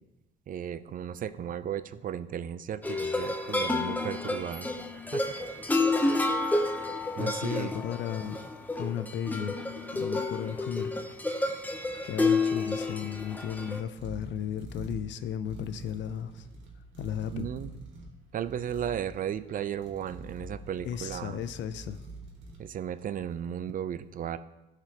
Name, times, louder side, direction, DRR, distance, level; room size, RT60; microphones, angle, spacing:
voice 1, 0.5-5.2 6.0-6.3 7.2-7.8 17.3-17.7 18.3-21.5 22.6-24.4, right 9 dB, 45° right, 14 dB, 0.4 m, -35 dB
sound 1, 2.8-13.8, left 2 dB, 10° left, 0.7 m, -30 dB
voice 2, 7.2-8.5 8.7-9.6 9.9-10.9 11.4-11.5 12.0-16.5 17.0-17.5 20.8-22.0, left 9 dB, 65° left, 12 dB, 0.5 m, -35 dB
sound 2, 13.5-23.3, right 2 dB, 70° right, 1.9 m, -47 dB
13.0 x 5.0 x 2.9 m, 1.0 s
cardioid pair, 100°, 20 cm